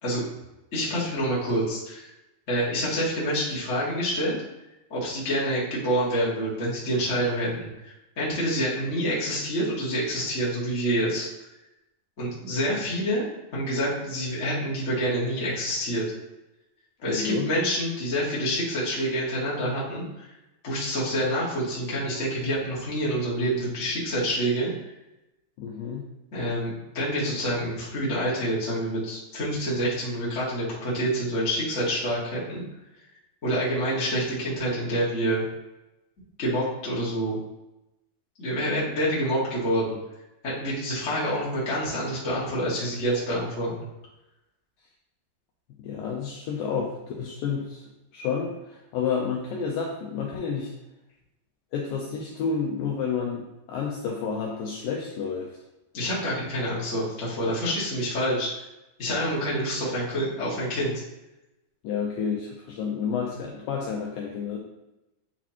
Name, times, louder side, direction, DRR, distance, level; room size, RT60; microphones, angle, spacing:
voice 1, 0.7-2.1 2.5-4.4 4.9-11.3 12.2-13.2 13.5-16.0 17.0-20.3 20.6-24.9 26.3-32.6 33.4-35.4 36.4-37.4 38.4-40.0 40.4-43.9 55.9-58.5 59.0-61.0, equal, 30° left, -8 dB, 1.4 m, -27 dB
voice 2, 17.1-17.5 25.6-26.1 45.8-47.9 48.1-50.7 51.7-55.6 61.8-64.6, left 6 dB, 85° left, -2 dB, 2.0 m, -30 dB
9.1 x 4.2 x 3.0 m, 0.96 s
omnidirectional pair, 4.8 m